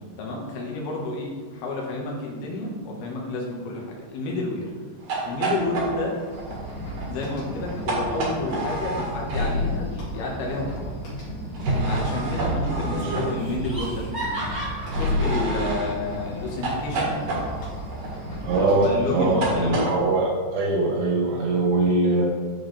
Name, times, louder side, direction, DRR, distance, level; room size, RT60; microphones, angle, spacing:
voice 1, 0.2-4.7 5.2-6.2 7.1-10.9 11.9-14.4 14.9-17.1 18.5-19.9, left 2 dB, 75° left, -2 dB, 3.4 m, -30 dB
sound 1, 5.0-10.0 11.5-13.8 14.9-19.9, right 1 dB, 60° right, 3.1 m, -29 dB
sound 2, 6.3-19.7, equal, 55° left, 3.9 m, -36 dB
Laughter, 12.9-13.0 13.4-15.8, right 1 dB, 20° right, 1.9 m, -35 dB
voice 2, 12.9-13.2 18.4-22.3, right 2 dB, 80° right, -2 dB, 3.7 m, -22 dB
14.0 x 4.8 x 3.4 m, 1.5 s
omnidirectional pair, 4.7 m